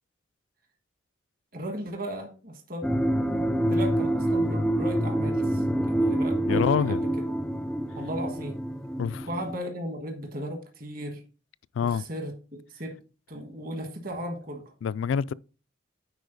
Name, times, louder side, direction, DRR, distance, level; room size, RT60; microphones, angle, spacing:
voice 1, 1.5-2.9 3.7-7.0 7.9-8.6 9.3-11.2 11.8-13.0 13.3-14.6, equal, 50° right, 1.4 m, -36 dB
sound 1, 2.8-9.6, right 1 dB, 5° left, 0.4 m, -26 dB
voice 2, 6.5-7.0 9.0-9.3 11.8-12.0 14.8-15.3, left 6 dB, 75° left, 0.3 m, -26 dB
9.7 x 4.2 x 4.0 m
head